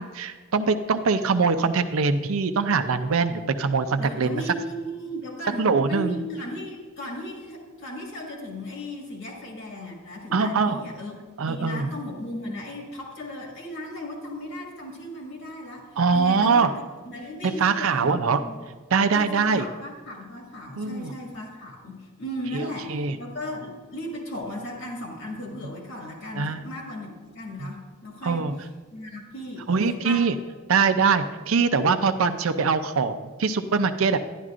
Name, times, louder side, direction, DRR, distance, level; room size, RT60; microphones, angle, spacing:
voice 1, 0.0-4.4 5.6-6.2 10.3-10.8 11.4-11.9 16.0-16.7 17.4-18.4 18.9-19.6 20.8-21.1 22.5-23.2 26.4-26.6 27.6-27.7 28.2-28.6 29.7-30.3 30.7-34.2, right 5 dB, 70° right, 10 dB, 0.5 m, -23 dB
voice 2, 4.0-11.2 11.5-16.7 17.1-18.6 19.1-28.5 28.9-30.2, left 1 dB, 60° left, -1 dB, 2.0 m, -36 dB
11.0 x 10.5 x 2.5 m, 1.4 s
head